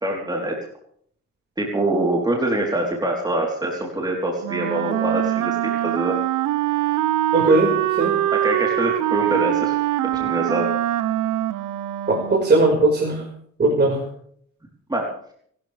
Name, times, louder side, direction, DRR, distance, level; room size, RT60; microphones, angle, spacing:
voice 1, 0.0-0.6 1.6-6.2 8.3-9.8 10.1-10.7 14.9-15.1, right 1 dB, 15° right, -1 dB, 4.0 m, -24 dB
Wind instrument woodwind instrument, 4.4-12.7, right 14 dB, 85° right, 1.0 m, -23 dB
voice 2, 7.3-8.1 12.1-13.2 13.6-14.0, right 2 dB, 35° right, -2 dB, 5.5 m, -18 dB
30.0 x 13.5 x 3.6 m, 0.63 s
cardioid pair, 90°, 30 cm